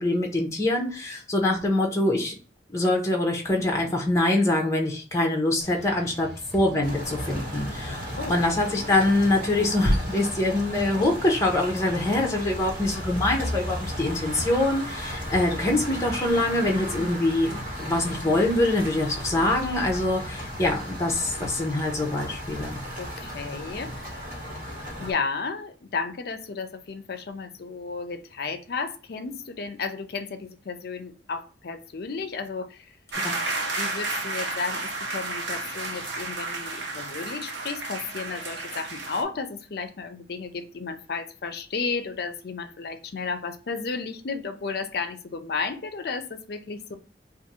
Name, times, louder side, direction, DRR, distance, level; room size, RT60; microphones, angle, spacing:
voice 1, 0.0-2.3 2.7-17.5 17.9-22.8 33.2-33.3, left 1 dB, 15° left, 0.7 m, -24 dB
sound 1, 5.6-21.5, equal, ahead, 1.4 m, -43 dB
sound 2, 6.8-25.1, equal, 50° right, 1.6 m, -35 dB
voice 2, 17.0-17.6 23.0-24.2 25.0-33.0 33.4-47.0, left 4 dB, 55° left, 0.5 m, -33 dB
sound 3, 33.1-39.2, right 3 dB, 75° right, 0.7 m, -32 dB
2.6 x 2.6 x 4.2 m
head